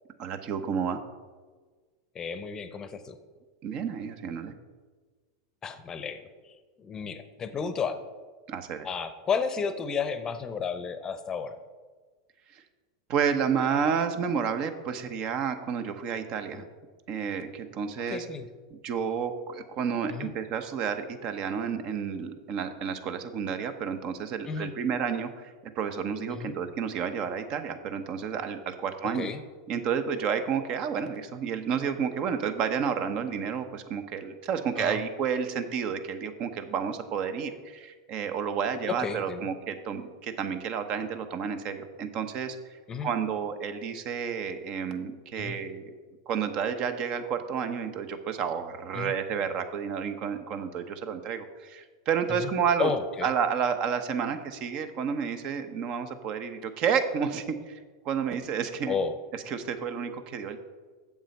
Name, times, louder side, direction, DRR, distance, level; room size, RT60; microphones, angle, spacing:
voice 1, 0.2-1.0 3.6-4.5 8.5-8.9 13.1-16.7 17.1-18.3 18.7-29.3 29.7-42.6 43.0-45.9 46.3-52.9 53.2-57.8 58.0-59.0 59.3-60.6, right 7 dB, 45° right, 9 dB, 0.9 m, -30 dB
voice 2, 2.1-3.2 5.6-6.2 6.8-8.0 8.8-11.6 16.5-16.6 18.1-18.5 20.1-20.3 24.5-24.7 26.3-26.6 29.0-29.4 34.8-35.0 38.9-39.4 42.9-43.1 45.4-45.5 48.9-49.1 52.4-52.5 52.8-53.3 58.9-59.1, left 6 dB, 25° left, 11 dB, 0.7 m, -32 dB
7.4 x 7.2 x 5.3 m, 1.4 s
hypercardioid pair, 100°, 2 cm